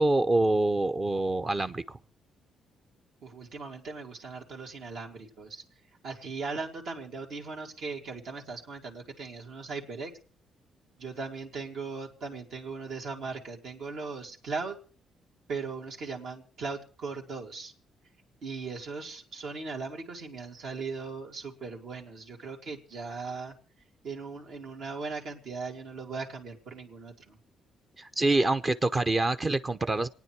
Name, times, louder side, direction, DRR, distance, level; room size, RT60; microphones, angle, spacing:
voice 1, 0.0-2.0 28.0-30.1, right 2 dB, 30° right, 10 dB, 0.7 m, -26 dB
voice 2, 3.2-5.6 6.0-10.1 11.0-14.8 15.5-17.7 18.4-23.6 24.0-27.4, right 4 dB, 70° right, 0 dB, 2.7 m, -38 dB
26.5 x 9.5 x 4.7 m, 0.42 s
cardioid pair, 95°, 0 cm